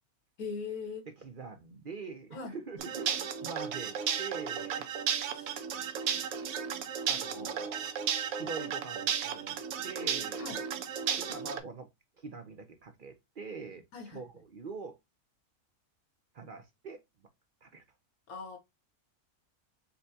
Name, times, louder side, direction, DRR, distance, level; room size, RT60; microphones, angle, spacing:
voice 1, 0.4-1.1 2.3-2.5 5.3-5.5 7.4-7.5 10.4-10.6 13.9-14.2 18.3-18.6, left 4 dB, 75° left, 1.6 m, -40 dB
voice 2, 1.1-4.9 7.1-7.9 8.3-10.6 11.2-11.9 12.2-15.0 16.3-17.0 17.6-17.8, right 4 dB, 50° right, 0.6 m, -44 dB
sound 1, 2.8-11.6, right 7 dB, 70° right, 1.1 m, -34 dB
6.7 x 2.3 x 2.7 m
omnidirectional pair, 1.6 m